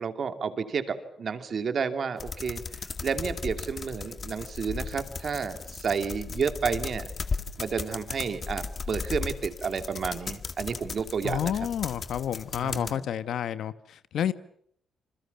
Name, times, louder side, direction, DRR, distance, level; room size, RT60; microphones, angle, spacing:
voice 1, 0.0-7.1 7.6-11.5 12.6-13.1, right 6 dB, 45° right, 8 dB, 2.7 m, -31 dB
sound 1, 2.2-13.0, left 5 dB, 35° left, 1.8 m, -36 dB
voice 2, 11.2-14.3, left 9 dB, 70° left, 13 dB, 1.1 m, -30 dB
28.0 x 26.5 x 7.0 m, 0.69 s
wide cardioid pair, 165°, 0 cm